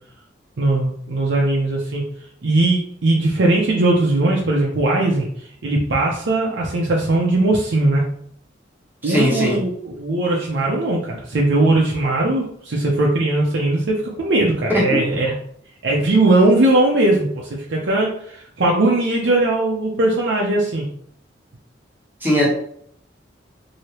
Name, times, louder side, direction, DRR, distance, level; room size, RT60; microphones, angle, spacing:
voice 1, 0.6-2.0 2.4-8.0 9.0-15.3 15.8-20.9, right 2 dB, 70° right, -3 dB, 0.6 m, -19 dB
voice 2, 9.0-9.6 14.7-15.0 22.2-22.5, equal, 10° right, -6 dB, 1.0 m, -18 dB
3.1 x 2.7 x 2.8 m, 0.64 s
head